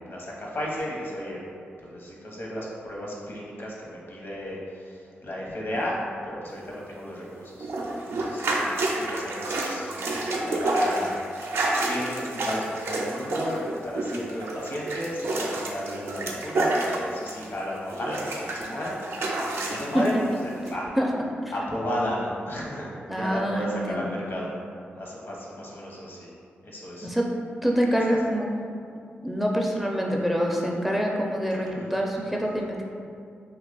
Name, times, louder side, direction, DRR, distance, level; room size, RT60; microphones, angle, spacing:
voice 1, 0.1-1.4 1.8-6.0 6.2-7.7 8.0-10.0 10.3-11.2 11.6-20.9 21.5-24.5 25.0-26.3 26.6-27.1 28.1-28.2 31.6-31.8, equal, 65° left, -4 dB, 0.8 m, -33 dB
sound 1, 7.6-17.6 17.9-20.1 20.7-20.8, right 2 dB, 75° right, 0.4 m, -29 dB
voice 2, 23.1-24.1 27.0-27.3 27.6-28.5 29.2-32.8, equal, 5° right, -1 dB, 0.4 m, -25 dB
2.8 x 2.3 x 3.9 m, 2.3 s
cardioid pair, 50°, 4 cm